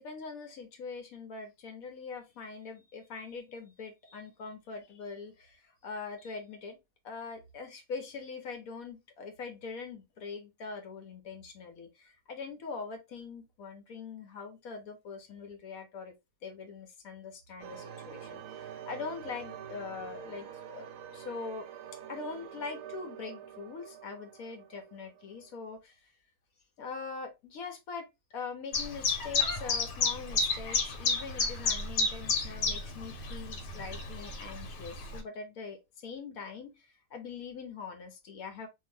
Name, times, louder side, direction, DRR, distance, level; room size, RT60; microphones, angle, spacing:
voice 1, 0.0-6.8 7.0-16.1 16.4-21.7 22.1-26.1 26.8-38.7, left 5 dB, 65° left, 1.1 m, -43 dB
sound 1, 17.6-25.6, right 9 dB, 75° right, 1.1 m, -46 dB
Chirp tweet, 28.7-35.2, left 4 dB, 80° left, 1.5 m, -31 dB
2.8 x 2.5 x 3.2 m
omnidirectional pair, 1.8 m